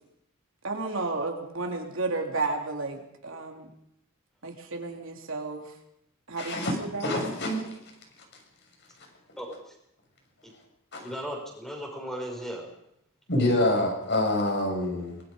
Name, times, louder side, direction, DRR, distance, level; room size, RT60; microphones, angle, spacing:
voice 1, 0.6-3.7 4.4-5.8 6.3-7.3, right 3 dB, 65° right, 3 dB, 3.5 m, -32 dB
voice 2, 6.4-6.7 7.0-7.6 10.9-11.1 13.3-15.2, left 1 dB, 55° left, 2 dB, 7.0 m, -26 dB
voice 3, 9.4-9.7 10.4-10.5 11.0-12.7, equal, ahead, 0 dB, 6.4 m, -36 dB
25.0 x 21.5 x 5.4 m, 0.79 s
head